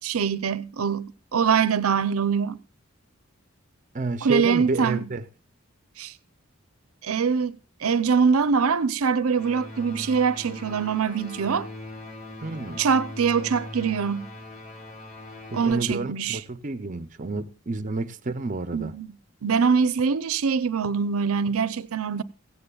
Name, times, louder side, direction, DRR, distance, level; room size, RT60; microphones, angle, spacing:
voice 1, 0.0-2.6 4.2-5.1 6.0-6.1 7.0-11.7 12.8-14.3 15.5-16.4 18.7-19.1 19.4-22.2, right 6 dB, 80° right, 0.6 m, -23 dB
voice 2, 3.9-5.3 10.0-10.1 12.4-12.8 15.5-18.9, right 2 dB, 35° right, 0.5 m, -30 dB
sound 1, 9.3-15.7, left 1 dB, 35° left, 5.0 m, -40 dB
16.5 x 16.0 x 2.3 m
head